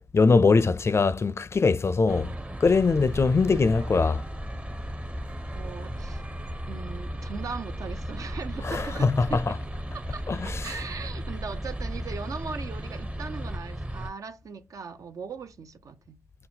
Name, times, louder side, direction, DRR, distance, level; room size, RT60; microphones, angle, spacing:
voice 1, 0.1-2.3 2.6-4.2 8.6-9.5 10.3-10.7, left 4 dB, 50° left, 0.4 m, -22 dB
sound 1, 2.1-14.1, equal, 25° right, 0.6 m, -35 dB
voice 2, 3.5-4.0 5.5-6.2 6.7-9.6 9.9-16.2, right 5 dB, 80° right, 0.5 m, -39 dB
5.6 x 2.1 x 2.8 m
cardioid pair, 50°, 6 cm